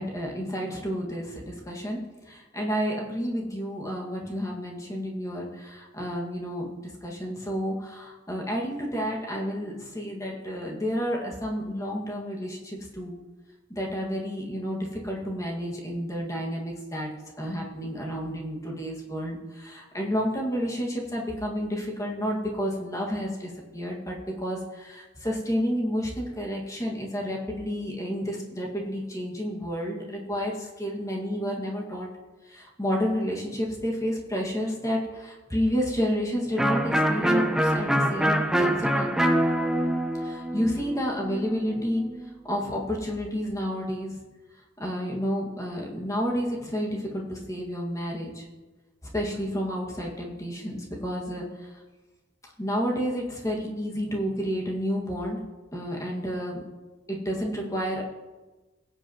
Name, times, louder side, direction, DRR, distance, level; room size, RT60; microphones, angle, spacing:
voice 1, 0.0-2.0 2.3-13.1 13.7-17.1 17.4-32.1 32.4-39.1 40.2-42.0 42.4-44.2 44.8-48.5 49.0-51.7 52.6-55.4 55.7-56.6 57.1-58.0, equal, 15° left, -2 dB, 1.7 m, -30 dB
Electric guitar, 36.6-42.2, right 1 dB, 5° right, 0.7 m, -25 dB
17.5 x 8.0 x 2.9 m, 1.2 s
head